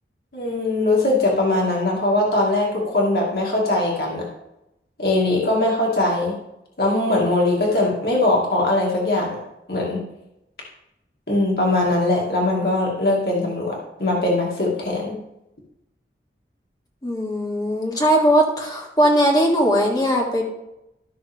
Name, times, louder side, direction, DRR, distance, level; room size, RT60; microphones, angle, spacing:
voice 1, 0.3-4.2 5.0-6.4 6.8-9.4 9.7-10.1 11.3-15.2, left 2 dB, 60° left, -3 dB, 2.4 m, -21 dB
voice 2, 17.0-20.5, equal, 20° left, 0 dB, 1.9 m, -19 dB
14.0 x 6.1 x 3.6 m, 0.87 s
head